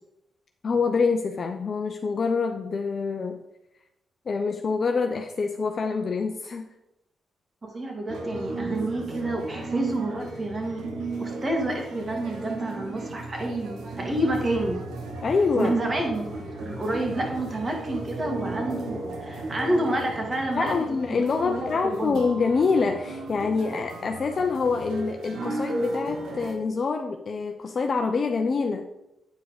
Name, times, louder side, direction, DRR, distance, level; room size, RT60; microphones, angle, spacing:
voice 1, 0.6-3.4 4.3-6.6 15.2-15.7 20.5-28.8, left 4 dB, 50° left, 4 dB, 0.7 m, -26 dB
voice 2, 7.6-10.8 11.2-14.8 15.5-20.7 21.1-22.2, right 1 dB, 35° right, 1 dB, 2.5 m, -29 dB
sound 1, 8.1-26.5, right 2 dB, 85° right, 1.3 m, -35 dB
9.1 x 4.8 x 5.0 m, 0.86 s
cardioid pair, 70°, 0 cm